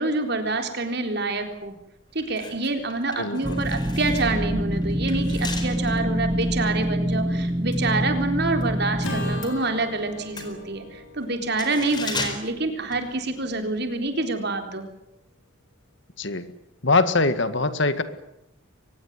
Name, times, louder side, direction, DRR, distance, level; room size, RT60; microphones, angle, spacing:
voice 1, 0.0-1.7 2.1-14.9, right 3 dB, 50° right, 6 dB, 3.9 m, -27 dB
sound 1, 1.5-1.7 2.1-8.7 9.0-13.6 13.9-14.1, left 3 dB, 20° left, 4.4 m, -38 dB
voice 2, 3.2-3.6 16.2-16.5 16.8-18.0, left 3 dB, 60° left, 12 dB, 1.8 m, -22 dB
sound 2, 3.4-9.4, equal, 15° right, 1.1 m, -26 dB
Acoustic guitar / Strum, 9.0-13.4, left 2 dB, 75° left, 6.0 m, -39 dB
24.0 x 20.0 x 9.6 m, 0.85 s
head